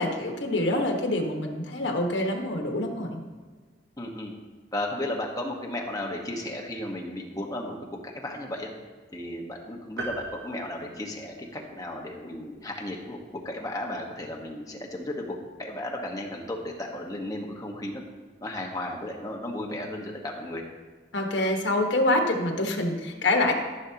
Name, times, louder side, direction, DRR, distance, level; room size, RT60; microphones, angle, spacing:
voice 1, 0.0-3.2 21.1-23.5, left 1 dB, 75° left, 2 dB, 1.4 m, -26 dB
voice 2, 4.0-4.3 4.7-7.8 8.2-8.7 9.1-13.2 13.4-18.0 18.4-20.6, left 1 dB, 20° left, 0 dB, 1.3 m, -34 dB
sound 1, 10.0-11.8, right 3 dB, 65° right, 1.3 m, -39 dB
14.5 x 6.6 x 2.9 m, 1.4 s
head